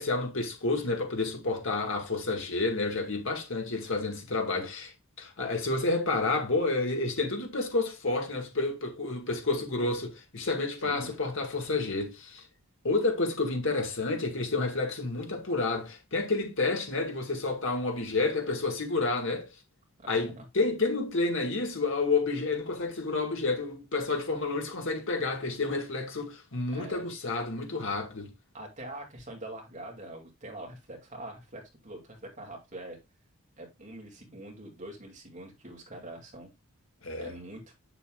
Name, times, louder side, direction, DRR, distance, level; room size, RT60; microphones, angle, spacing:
voice 1, 0.0-4.9 5.2-12.5 12.8-19.5 20.1-28.3 37.0-37.3, left 3 dB, 60° left, 1.9 m, -30 dB
voice 2, 10.8-11.2 20.0-20.5 26.7-27.0 28.5-33.0 33.6-36.5 37.2-37.6, right 1 dB, 35° right, 2.4 m, -44 dB
8.5 x 6.9 x 2.3 m
head